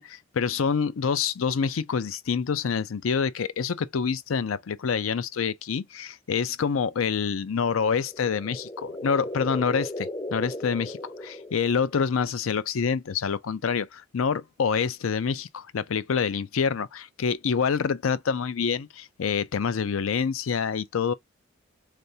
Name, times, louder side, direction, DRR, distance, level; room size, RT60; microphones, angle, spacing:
voice 1, 0.0-21.1, left 6 dB, 85° left, 0.5 m, -27 dB
sound 1, 8.0-12.1, left 1 dB, 25° left, 0.5 m, -36 dB
3.6 x 3.4 x 2.7 m
head